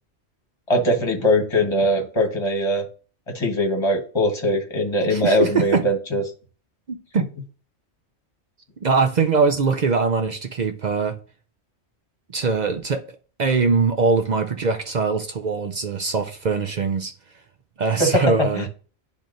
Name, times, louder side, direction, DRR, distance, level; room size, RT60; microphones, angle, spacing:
voice 1, 0.7-2.8 3.3-6.2 18.0-18.7, equal, 25° left, 1.3 m, -21 dB
voice 2, 5.0-5.8 6.9-7.3 8.8-11.2 12.3-13.0 13.4-17.1 17.8-18.7, right 4 dB, 55° right, 0.5 m, -22 dB
10.5 x 3.6 x 2.6 m
omnidirectional pair, 1.2 m